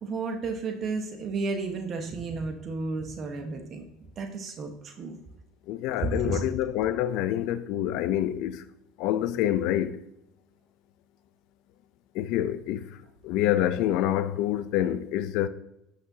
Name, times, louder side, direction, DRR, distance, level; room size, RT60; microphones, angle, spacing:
voice 1, 0.0-3.8 4.2-5.2 6.2-6.4, right 4 dB, 40° right, 1.3 m, -33 dB
voice 2, 5.7-8.6 9.0-10.0 12.1-12.9 13.2-15.5, left 12 dB, 65° left, 0.6 m, -27 dB
11.0 x 6.5 x 2.8 m
supercardioid pair, 120°, 0 cm